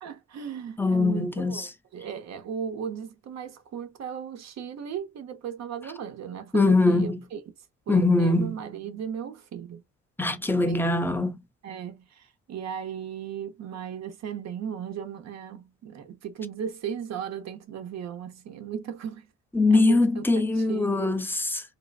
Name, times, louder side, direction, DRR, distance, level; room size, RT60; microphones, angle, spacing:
voice 1, 0.0-7.4 7.9-9.8 10.6-11.0 11.6-19.3 19.7-20.2 20.6-21.1, right 8 dB, 60° right, 0.9 m, -36 dB
voice 2, 0.8-1.7 6.5-7.2 7.9-8.6 10.2-11.4 19.5-21.6, left 3 dB, 5° left, 0.6 m, -22 dB
3.8 x 2.4 x 2.4 m
cardioid pair, 90°, 30 cm